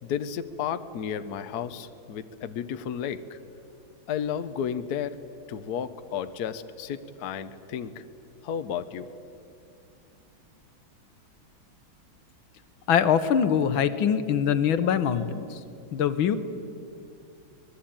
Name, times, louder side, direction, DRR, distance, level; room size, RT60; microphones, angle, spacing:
voice 1, 0.0-3.4 4.1-5.2 5.5-8.0 8.4-9.1, left 8 dB, 60° left, 10 dB, 1.3 m, -32 dB
voice 2, 12.9-15.6 15.9-16.4, left 8 dB, 80° left, 11 dB, 1.9 m, -23 dB
24.5 x 20.5 x 8.9 m, 2.6 s
omnidirectional pair, 2.2 m